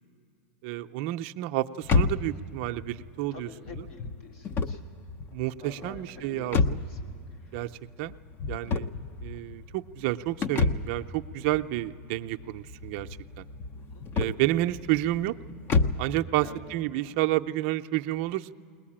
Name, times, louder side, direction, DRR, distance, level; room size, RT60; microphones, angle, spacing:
voice 1, 0.6-3.9 5.3-6.8 7.5-7.7 8.0-8.1 8.5-8.9 9.2-13.1 13.4-13.5 14.1-15.4 16.0-18.5, right 15 dB, 55° right, 7 dB, 0.6 m, -30 dB
sound 1, 1.8-16.2, left 4 dB, 30° left, 0.8 m, -31 dB
voice 2, 3.3-4.8 5.6-7.2 13.7-14.1 16.4-16.6 16.9-17.1, left 4 dB, 70° left, 1 dB, 3.1 m, -48 dB
21.0 x 19.5 x 8.7 m, 2.4 s
supercardioid pair, 125°, 7 cm